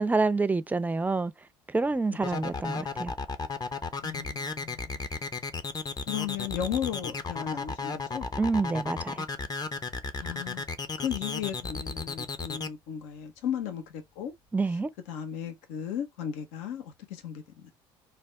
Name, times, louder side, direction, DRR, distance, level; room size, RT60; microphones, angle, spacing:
voice 1, 0.0-1.3 1.7-3.1 8.4-9.2 14.5-14.9, right 3 dB, 10° right, 0.5 m, -27 dB
sound 1, 2.2-12.7, left 4 dB, 30° left, 0.7 m, -34 dB
voice 2, 4.0-5.0 6.1-8.3 10.2-10.6 11.0-14.3 15.1-17.7, left 9 dB, 75° left, 0.7 m, -35 dB
3.3 x 2.3 x 3.7 m
hypercardioid pair, 60°, 13 cm